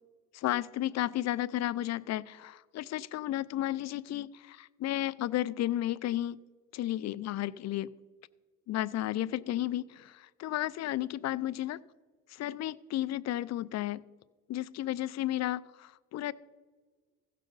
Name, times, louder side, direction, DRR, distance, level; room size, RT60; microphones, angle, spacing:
voice 1, 0.3-6.4 6.7-7.9 8.7-11.8 12.3-14.0 14.5-16.3, left 14 dB, 60° left, 18 dB, 0.4 m, -33 dB
15.5 x 6.5 x 3.9 m, 1.4 s
cardioid pair, 90°, 30 cm